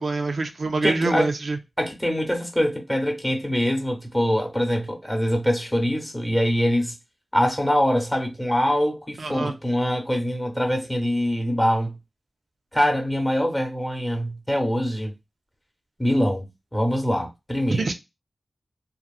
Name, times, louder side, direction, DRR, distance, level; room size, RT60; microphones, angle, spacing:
voice 1, 0.0-1.6 9.2-9.5 17.7-17.9, right 3 dB, 70° right, 0.4 m, -25 dB
voice 2, 0.8-1.3 1.8-6.9 7.3-12.0 12.7-15.1 16.0-17.9, equal, 10° left, 0.7 m, -24 dB
2.8 x 2.0 x 2.3 m
wide cardioid pair, 90°, 0 cm